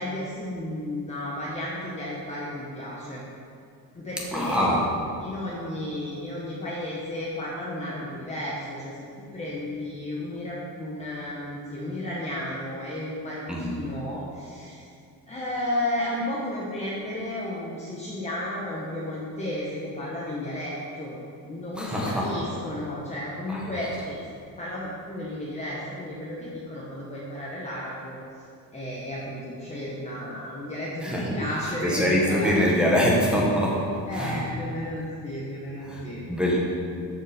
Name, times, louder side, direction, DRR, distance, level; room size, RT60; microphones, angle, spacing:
voice 1, 0.0-3.2 3.9-4.7 5.2-14.9 15.3-21.1 21.5-24.2 24.6-28.2 28.7-33.1 34.1-36.2, left 1 dB, 20° left, -6 dB, 1.3 m, -33 dB
voice 2, 4.3-4.8 13.5-13.7 21.8-22.3 23.5-23.6 31.0-31.4 31.8-33.8 34.1-34.4 35.9-36.0 36.3-36.6, equal, 5° right, -5 dB, 1.4 m, -23 dB
13.5 x 5.5 x 5.2 m, 2.4 s
cardioid pair, 165°, 36 cm